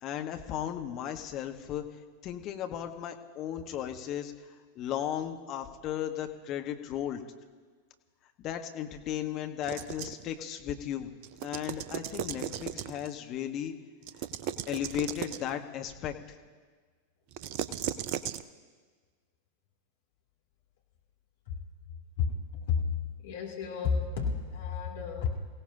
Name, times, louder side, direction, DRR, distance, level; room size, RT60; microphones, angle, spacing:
voice 1, 0.0-1.8 2.2-4.3 4.7-7.2 8.4-11.1 11.4-13.7 14.7-16.4, left 10 dB, 35° left, 5 dB, 1.3 m, -35 dB
sound 1, 9.6-10.3 11.2-13.1 14.0-15.5 17.3-18.4, right 10 dB, 45° right, 0.6 m, -36 dB
voice 2, 22.2-22.9 23.2-25.3, left 6 dB, 55° left, -1 dB, 2.9 m, -31 dB
29.0 x 16.5 x 2.8 m, 1.5 s
figure-of-eight pair, 90°, 0 cm